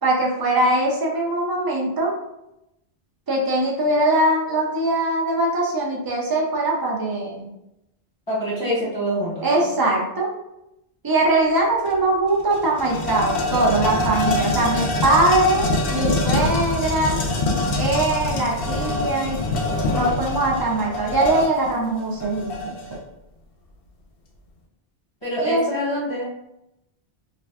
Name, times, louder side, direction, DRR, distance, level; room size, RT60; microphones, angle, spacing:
voice 1, 0.0-2.1 3.3-7.5 9.4-10.3 11.0-17.2 17.8-19.4 19.9-22.7 25.4-25.6, right 2 dB, 30° right, -2 dB, 0.5 m, -21 dB
voice 2, 8.3-9.7 25.2-26.3, equal, 25° left, -9 dB, 1.0 m, -25 dB
sound 1, 11.9-12.0 12.3-23.0, left 2 dB, 65° left, 0.8 m, -24 dB
3.3 x 2.5 x 2.3 m, 0.87 s
omnidirectional pair, 1.1 m